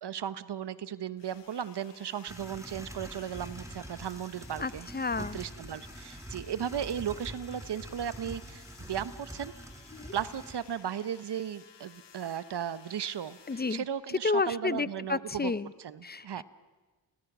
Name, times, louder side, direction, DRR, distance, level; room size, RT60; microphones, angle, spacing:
voice 1, 0.0-4.9 5.3-9.5 10.1-15.5 15.8-16.4, right 9 dB, 60° right, 15 dB, 1.1 m, -36 dB
sound 1, 1.2-13.8, left 7 dB, 65° left, 2.1 m, -56 dB
sound 2, 2.3-10.5, right 1 dB, 5° right, 2.3 m, -45 dB
voice 2, 4.6-5.4 9.9-10.2 13.5-13.8 14.2-15.7 16.0-16.4, left 4 dB, 20° left, 18 dB, 0.6 m, -31 dB
29.5 x 19.0 x 6.1 m, 1.2 s
cardioid pair, 60°, 45 cm